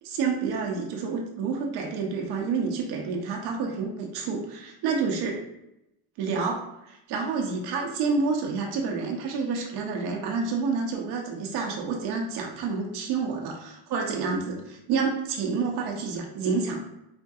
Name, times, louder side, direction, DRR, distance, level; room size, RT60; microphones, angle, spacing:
voice 1, 0.0-5.4 6.2-16.8, right 4 dB, 85° right, 1 dB, 0.8 m, -29 dB
4.3 x 2.7 x 2.3 m, 0.87 s
cardioid pair, 140°, 38 cm